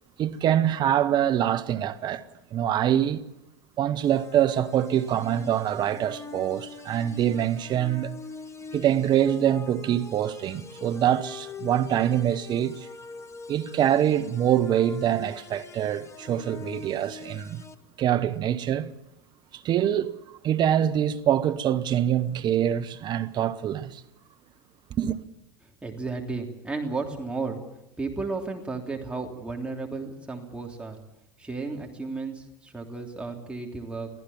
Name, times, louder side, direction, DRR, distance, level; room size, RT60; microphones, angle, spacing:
voice 1, 0.2-2.2 2.5-3.2 3.8-8.2 8.7-12.9 13.5-17.6 18.0-18.9 19.5-20.2 20.4-24.0 25.0-25.2, right 10 dB, 35° right, 1.2 m, -24 dB
sound 1, 4.0-17.7, left 4 dB, 20° left, 1.6 m, -44 dB
voice 2, 25.6-27.6 28.0-31.0 31.4-34.1, right 3 dB, 10° right, 3.3 m, -33 dB
23.5 x 15.0 x 7.4 m
figure-of-eight pair, 85°, 13 cm